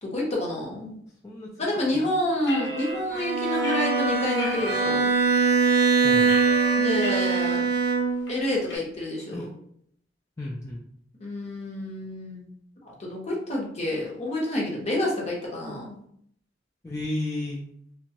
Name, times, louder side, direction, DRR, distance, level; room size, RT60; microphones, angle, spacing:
voice 1, 0.0-0.9 1.6-5.1 6.8-7.7 8.3-9.5 11.2-12.5 12.8-16.0, left 1 dB, 35° left, -3 dB, 0.8 m, -29 dB
voice 2, 1.2-2.1 6.0-6.3 9.3-9.5 10.4-10.8 16.8-17.6, left 1 dB, 15° left, -4 dB, 0.3 m, -33 dB
sound 1, 2.4-4.9 5.4-5.5 5.8-7.5 7.9-8.0 8.3-8.8, left 1 dB, 75° left, 0.9 m, -33 dB
Bowed string instrument, 3.1-8.4, right 4 dB, 60° right, 0.5 m, -23 dB
2.9 x 2.2 x 2.8 m, 0.69 s
head